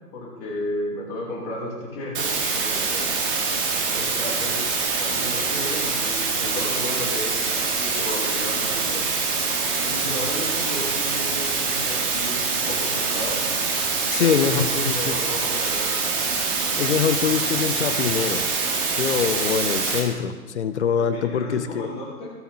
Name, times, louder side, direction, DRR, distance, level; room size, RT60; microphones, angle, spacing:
voice 1, 0.0-3.1 3.9-4.6 5.0-7.5 7.8-9.1 9.8-13.4 14.2-16.0 21.0-22.3, left 1 dB, 20° left, -3 dB, 2.6 m, -33 dB
sound 1, 2.1-20.0, right 4 dB, 35° right, 2.2 m, -25 dB
voice 2, 14.1-15.2 16.8-18.5 19.0-21.9, left 7 dB, 45° left, 11 dB, 0.8 m, -24 dB
17.5 x 6.2 x 4.2 m, 1.4 s
hypercardioid pair, 150°, 46 cm